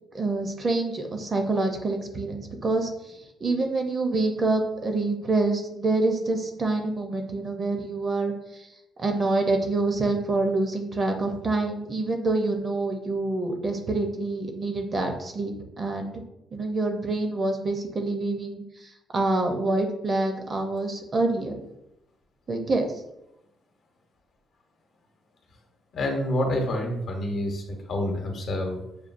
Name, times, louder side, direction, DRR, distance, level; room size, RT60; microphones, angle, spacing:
voice 1, 0.1-8.3 9.0-16.1 16.5-18.6 19.1-21.6 22.5-22.9, right 2 dB, 40° right, 4 dB, 0.7 m, -26 dB
voice 2, 25.9-28.8, left 1 dB, 60° left, 2 dB, 0.9 m, -28 dB
6.6 x 2.2 x 2.6 m, 0.88 s
cardioid pair, 95°, 0 cm